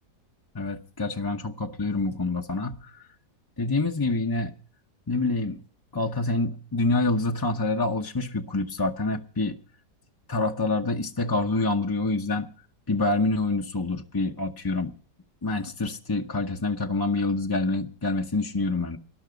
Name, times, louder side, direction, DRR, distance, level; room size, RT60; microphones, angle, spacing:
voice 1, 0.5-2.8 3.6-4.5 5.1-5.6 5.9-9.5 10.3-12.5 12.9-14.9 15.4-19.0, left 2 dB, 20° left, 0.6 m, -26 dB
19.0 x 12.0 x 5.1 m
omnidirectional pair, 1.8 m